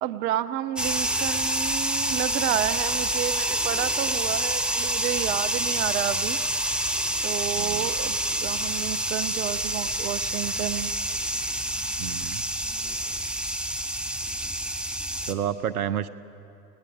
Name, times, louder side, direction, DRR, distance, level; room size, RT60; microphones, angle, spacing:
voice 1, 0.0-6.4 7.2-11.0, right 12 dB, 25° right, 14 dB, 0.3 m, -30 dB
sound 1, 0.8-15.3, right 1 dB, ahead, 0.7 m, -27 dB
voice 2, 7.6-7.9 12.0-12.5 15.3-16.1, right 10 dB, 75° right, 15 dB, 0.8 m, -30 dB
30.0 x 17.5 x 5.0 m, 2.9 s
figure-of-eight pair, 85°, 45 cm